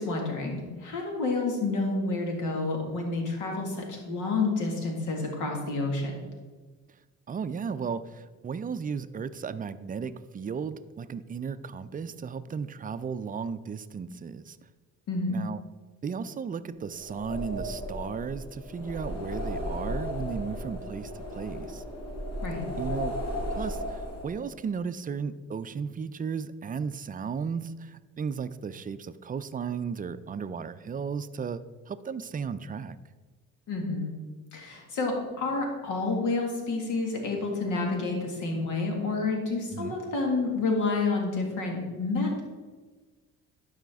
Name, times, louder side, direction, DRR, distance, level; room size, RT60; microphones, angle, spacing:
voice 1, 0.0-6.2 15.1-15.4 22.4-22.6 33.7-34.1 34.5-42.4, left 3 dB, 85° left, 1 dB, 1.9 m, -29 dB
voice 2, 7.3-14.6 15.3-15.6 16.0-21.8 22.8-23.2 23.5-33.0 39.7-40.0, right 6 dB, 30° right, 13 dB, 0.4 m, -35 dB
sound 1, 16.9-24.5, equal, 55° left, 1.6 m, -35 dB
12.0 x 5.0 x 3.5 m, 1.4 s
cardioid pair, 90°, 30 cm